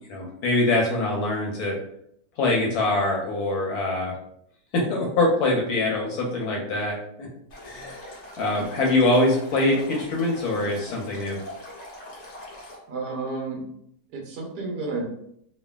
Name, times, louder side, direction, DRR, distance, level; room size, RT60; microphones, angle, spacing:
voice 1, 0.1-1.8 2.4-4.1 4.7-7.3 7.6-8.1 8.4-11.4, left 2 dB, 70° left, -1 dB, 1.0 m, -24 dB
Stream, 7.5-12.8, left 1 dB, 50° left, 0.6 m, -42 dB
voice 2, 12.9-13.6 14.1-15.1, right 3 dB, 75° right, -1 dB, 1.3 m, -31 dB
3.2 x 2.2 x 2.2 m, 0.70 s
omnidirectional pair, 1.8 m